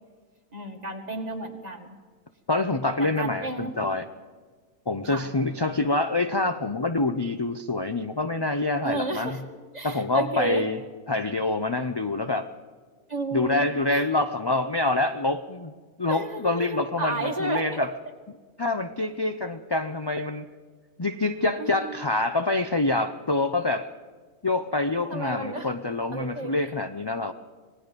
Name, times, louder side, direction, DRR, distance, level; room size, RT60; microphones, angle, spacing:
voice 1, 0.5-2.0 3.0-3.7 5.0-5.3 8.8-9.4 9.7-10.6 13.1-13.6 13.9-14.0 16.1-17.9 21.6-22.1 25.1-25.7 26.1-26.5, right 3 dB, 25° right, 4 dB, 2.0 m, -32 dB
voice 2, 2.5-4.1 4.9-9.4 9.8-10.8 11.1-12.5 13.3-15.7 16.0-17.9 18.6-20.5 21.0-23.9 24.4-27.3, left 2 dB, 30° left, 8 dB, 0.5 m, -26 dB
26.0 x 19.5 x 5.3 m, 1.5 s
omnidirectional pair, 1.6 m